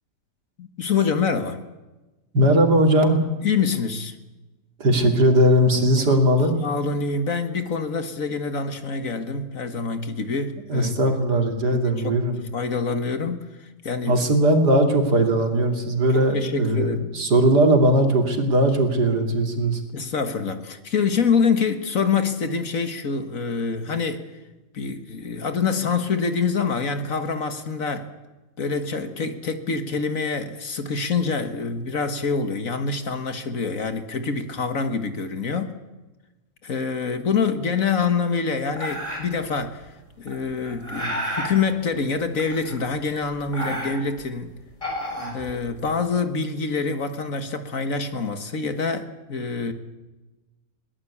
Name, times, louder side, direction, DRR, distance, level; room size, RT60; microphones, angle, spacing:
voice 1, 0.6-1.6 3.4-4.2 6.0-6.1 6.6-11.2 11.7-12.2 12.5-13.5 13.8-14.3 16.1-17.1 19.9-24.2 24.7-28.1 28.6-35.8 36.6-39.8 40.2-44.6 45.3-49.7, left 5 dB, 55° left, 9 dB, 1.9 m, -26 dB
voice 2, 2.3-3.2 4.8-6.6 10.7-12.4 14.1-19.8, right 1 dB, 75° right, 4 dB, 3.3 m, -19 dB
sound 1, 38.8-39.4 40.3-41.5 42.4-43.0 43.3-44.2 44.7-45.9, equal, 20° left, 4.5 m, -31 dB
22.5 x 18.5 x 8.5 m, 1.1 s
omnidirectional pair, 1.8 m